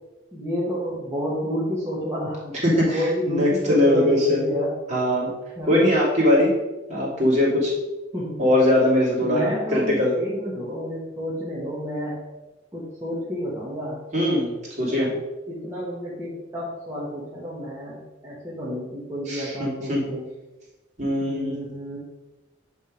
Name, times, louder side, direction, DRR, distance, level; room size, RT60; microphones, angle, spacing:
voice 1, 0.3-4.7 5.6-6.0 8.1-8.4 9.2-12.2 12.7-14.0 14.8-15.2 15.5-20.2 21.2-22.0, equal, 15° right, -8 dB, 1.4 m, -30 dB
voice 2, 2.6-4.5 4.9-5.3 5.7-6.5 6.9-7.7 8.4-9.4 9.7-10.1 14.1-14.5 14.8-15.1 19.3-20.0 21.0-21.5, left 1 dB, 35° right, -6 dB, 2.8 m, -21 dB
9.6 x 3.5 x 5.2 m, 1.1 s
head